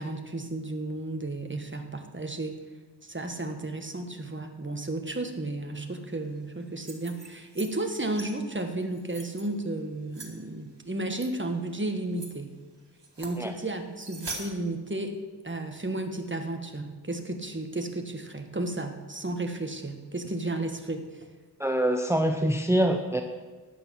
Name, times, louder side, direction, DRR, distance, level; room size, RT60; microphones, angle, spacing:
voice 1, 0.0-2.6 3.0-12.6 13.2-15.2 15.4-21.3, right 2 dB, 30° right, 5 dB, 1.4 m, -33 dB
sound 1, 6.7-7.7 7.9-8.3 8.8-9.4 10.1-10.3 11.1-11.3 11.7-11.8 12.1-12.3 13.0-13.4 14.0-14.4, right 2 dB, 85° right, 2.0 m, -41 dB
voice 2, 21.6-23.2, right 1 dB, 5° right, 5 dB, 0.8 m, -24 dB
13.0 x 9.7 x 5.9 m, 1.4 s
wide cardioid pair, 45°, 41 cm